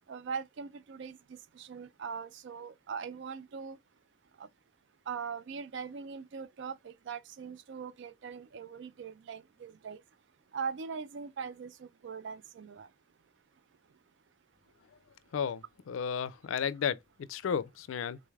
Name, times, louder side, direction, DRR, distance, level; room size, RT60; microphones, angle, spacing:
voice 1, 0.1-3.8 4.4-4.5 5.1-10.0 10.5-12.9, right 6 dB, 60° right, 0.4 m, -41 dB
voice 2, 15.3-17.0 17.3-18.2, left 7 dB, 85° left, 0.4 m, -33 dB
3.7 x 3.2 x 2.3 m
head